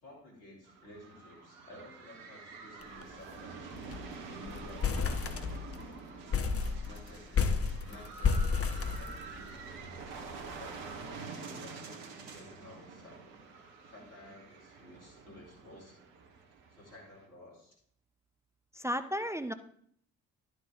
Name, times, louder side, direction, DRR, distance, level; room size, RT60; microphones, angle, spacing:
voice 1, 0.0-3.7 4.3-5.4 6.6-9.5 10.6-13.4 13.9-16.0 16.7-17.7, left 1 dB, 80° left, -2 dB, 2.6 m, -53 dB
sound 1, 0.7-17.3, right 4 dB, 70° right, 1.3 m, -47 dB
sound 2, 2.8-3.0 3.3-3.4 3.7-4.1 4.5-5.9 6.3-9.6, left 5 dB, 35° left, 1.0 m, -31 dB
voice 2, 18.7-19.5, equal, 5° right, 10 dB, 0.5 m, -33 dB
11.5 x 6.3 x 3.6 m, 0.65 s
figure-of-eight pair, 40°, 40 cm